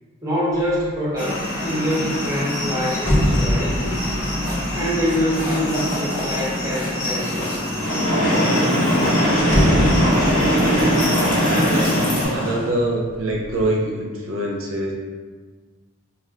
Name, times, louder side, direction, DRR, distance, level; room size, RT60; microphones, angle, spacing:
voice 1, 0.2-4.0 4.7-7.8, equal, 15° right, -8 dB, 0.7 m, -25 dB
sound 1, 0.6-1.0 1.4-6.7 7.3-8.0 8.3-8.4 8.7-12.6 13.0-13.6, equal, 15° left, 0.3 m, -25 dB
sound 2, 1.2-12.3, left 1 dB, 40° left, 1.0 m, -26 dB
Train, 7.7-12.7, equal, 70° left, 1.3 m, -20 dB
voice 2, 12.0-14.9, right 1 dB, 85° right, -1 dB, 0.5 m, -24 dB
2.4 x 2.3 x 3.4 m, 1.4 s
head